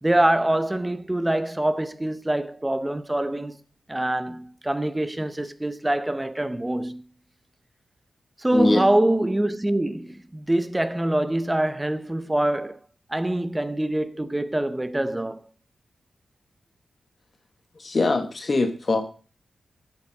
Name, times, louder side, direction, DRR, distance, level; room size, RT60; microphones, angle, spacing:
voice 1, 0.0-3.6 3.9-7.0 8.4-12.8 13.1-15.4, right 1 dB, 10° right, 0.6 m, -24 dB
voice 2, 17.8-19.0, left 2 dB, 35° left, 0.9 m, -22 dB
8.3 x 7.3 x 6.4 m
wide cardioid pair, 160°, 0 cm